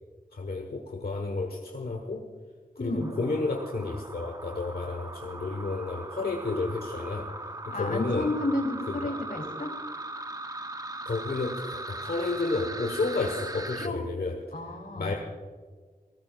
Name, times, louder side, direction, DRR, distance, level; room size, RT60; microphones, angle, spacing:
voice 1, 0.3-2.3 2.8-8.3 9.0-9.1 11.0-15.1, left 3 dB, 90° left, 2 dB, 1.2 m, -31 dB
voice 2, 2.8-3.1 7.7-9.7 13.8-14.0 14.5-15.1, left 2 dB, 65° left, 2 dB, 2.7 m, -31 dB
sound 1, 3.0-13.9, right 2 dB, 25° right, 0.8 m, -39 dB
27.5 x 13.5 x 2.4 m, 1.5 s
wide cardioid pair, 40°, 15 cm